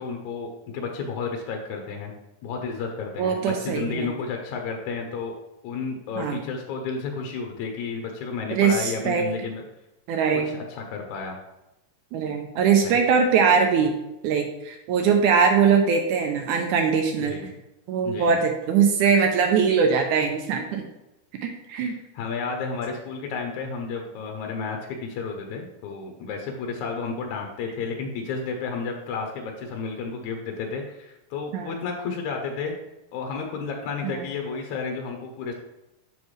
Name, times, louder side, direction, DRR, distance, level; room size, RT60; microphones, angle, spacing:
voice 1, 0.0-2.1 2.4-5.4 5.6-9.6 10.5-11.4 12.8-13.0 17.3-17.5 18.0-18.4 21.8-32.7 33.1-35.5, left 5 dB, 70° left, 2 dB, 2.0 m, -32 dB
voice 2, 3.2-4.1 6.2-6.4 8.5-9.3 10.1-10.5 12.1-13.9 14.2-17.4 17.9-20.8 21.4-21.9 31.5-31.8 34.0-34.3, right 6 dB, 80° right, 4 dB, 1.9 m, -21 dB
7.0 x 5.7 x 3.2 m, 0.90 s
omnidirectional pair, 3.9 m